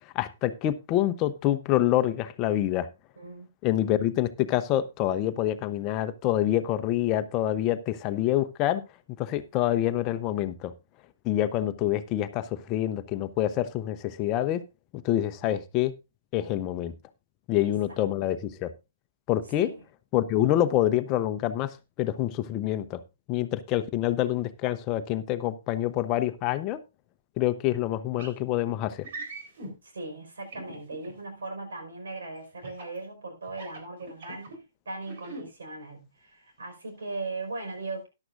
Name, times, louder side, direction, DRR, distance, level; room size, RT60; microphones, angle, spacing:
voice 1, 0.1-2.9 3.6-8.8 9.2-10.7 11.2-14.6 14.9-15.9 16.3-16.9 17.5-18.7 19.3-19.7 20.1-23.0 23.3-26.8 27.4-29.1, left 13 dB, 30° left, 0.8 m, -26 dB
voice 2, 3.2-3.5 17.6-18.0 19.6-19.8 29.8-38.1, right 3 dB, 70° right, 5.0 m, -38 dB
sound 1, 28.2-28.4 29.0-29.7 30.5-31.1 32.6-33.0 33.5-34.6 35.0-35.4, right 2 dB, 55° right, 4.2 m, -41 dB
14.0 x 10.5 x 2.6 m
figure-of-eight pair, 125°, 0 cm